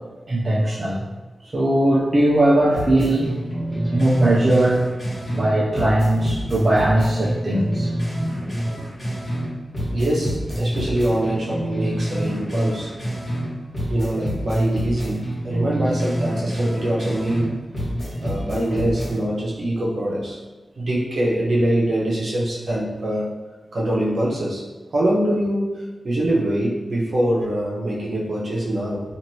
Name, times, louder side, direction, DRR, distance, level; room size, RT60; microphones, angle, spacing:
voice 1, 0.3-1.1 1.5-3.3 3.9-4.8 5.3-7.9, right 1 dB, 40° right, -6 dB, 0.4 m, -19 dB
sound 1, 2.7-5.5 5.7-9.5 9.7-13.5 13.7-17.5 17.7-19.2, equal, 25° left, 1.3 m, -27 dB
voice 2, 9.9-12.9 13.9-17.7 18.2-20.4 20.8-23.3 23.7-24.6 24.9-29.0, right 1 dB, 65° right, -5 dB, 0.8 m, -23 dB
3.1 x 2.5 x 2.7 m, 1.2 s
wide cardioid pair, 115°, 0 cm